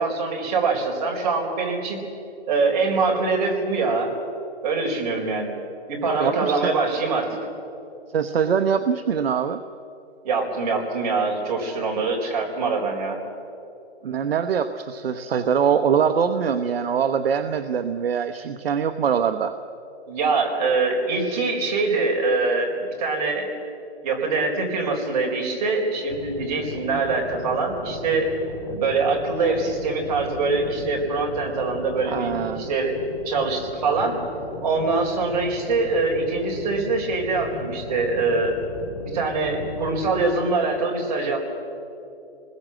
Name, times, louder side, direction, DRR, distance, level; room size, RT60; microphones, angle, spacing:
voice 1, 0.0-2.0 2.5-4.1 4.6-5.5 5.9-7.4 10.2-13.2 20.1-23.6 24.0-28.3 28.7-33.0 33.2-34.2 34.6-38.6 39.0-41.4, right 3 dB, 35° right, 0 dB, 4.3 m, -24 dB
voice 2, 6.2-6.7 8.1-9.6 14.0-19.5 32.0-32.7, right 7 dB, 60° right, 8 dB, 1.0 m, -23 dB
sound 1, 26.1-40.2, left 3 dB, 20° left, 2.6 m, -37 dB
25.5 x 21.0 x 7.7 m, 2.8 s
hypercardioid pair, 170°, 33 cm